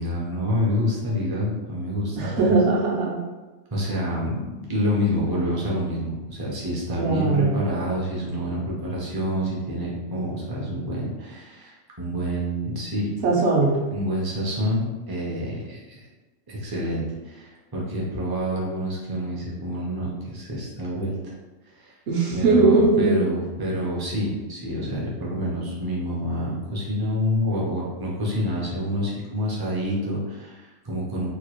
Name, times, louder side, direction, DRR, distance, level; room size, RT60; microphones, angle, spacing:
voice 1, 0.0-2.6 3.7-13.1 13.9-16.1 16.5-21.3 21.8-22.0 22.3-31.3, equal, 35° right, -5 dB, 0.4 m, -27 dB
voice 2, 2.2-3.2 7.0-7.7 13.2-13.8 22.1-23.2, right 3 dB, 65° right, -3 dB, 1.0 m, -20 dB
2.9 x 2.3 x 3.0 m, 1.2 s
omnidirectional pair, 1.4 m